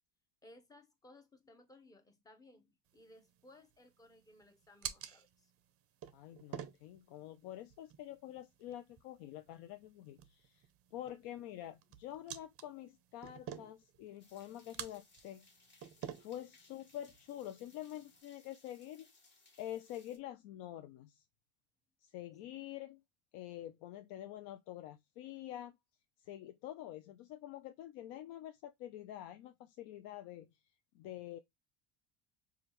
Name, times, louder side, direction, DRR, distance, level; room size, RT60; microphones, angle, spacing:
voice 1, 0.4-5.5, left 1 dB, 10° left, 0.7 m, -61 dB
sound 1, 2.9-18.2, right 10 dB, 35° right, 0.5 m, -51 dB
voice 2, 6.1-15.5 16.2-19.1 19.6-21.2 22.0-23.0 23.3-25.7 26.2-30.5 30.9-31.4, left 12 dB, 65° left, 0.5 m, -47 dB
sound 2, 14.2-20.2, left 3 dB, 25° left, 1.1 m, -66 dB
4.9 x 2.4 x 2.9 m
supercardioid pair, 120°, 42 cm